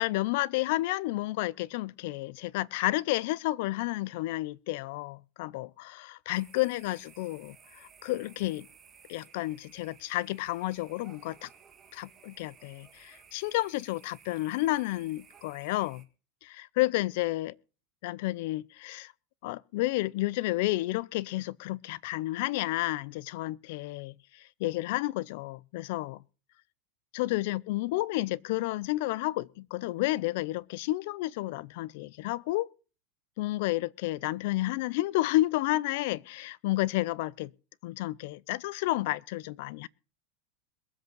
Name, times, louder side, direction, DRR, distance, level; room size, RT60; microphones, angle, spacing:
voice 1, 0.0-8.7 9.1-11.5 11.9-16.0 16.4-17.5 18.0-19.1 19.4-26.2 27.1-32.7 33.4-37.5 37.8-39.9, left 18 dB, 65° left, 0.5 m, -31 dB
sound 1, 6.3-16.1, right 7 dB, 25° right, 1.7 m, -57 dB
22.5 x 7.9 x 3.9 m
supercardioid pair, 130°, 0 cm